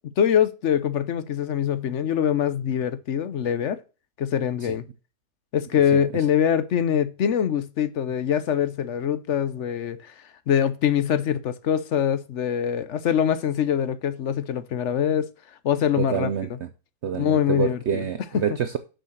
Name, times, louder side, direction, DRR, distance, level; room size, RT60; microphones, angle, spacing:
voice 1, 0.2-3.8 4.2-4.8 5.5-10.1 10.5-15.3 15.6-16.3 17.1-18.0 18.3-18.4, left 9 dB, 55° left, 1.1 m, -23 dB
voice 2, 16.0-16.7 17.0-18.8, right 8 dB, 60° right, 0.9 m, -27 dB
7.2 x 6.4 x 6.5 m
omnidirectional pair, 1.6 m